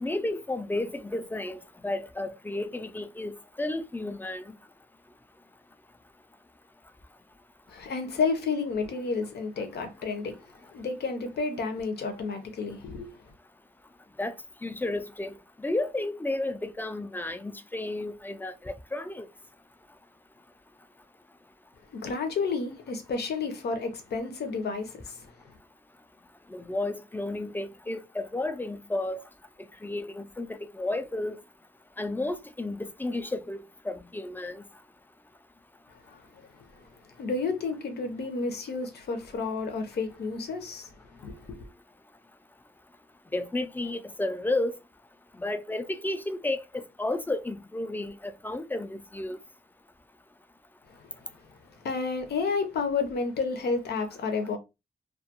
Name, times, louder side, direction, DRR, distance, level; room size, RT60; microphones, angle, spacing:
voice 1, 0.0-4.5 14.2-14.4 14.6-19.3 26.5-29.2 29.8-31.4 32.0-34.6 43.3-44.8 45.3-49.4, left 2 dB, 10° left, 0.3 m, -32 dB
voice 2, 7.7-10.4 10.7-13.1 22.0-25.2 36.1-36.2 37.2-40.9 41.2-41.7 51.8-54.6, left 4 dB, 85° left, 0.6 m, -31 dB
2.3 x 2.2 x 2.7 m
cardioid pair, 80°, 16 cm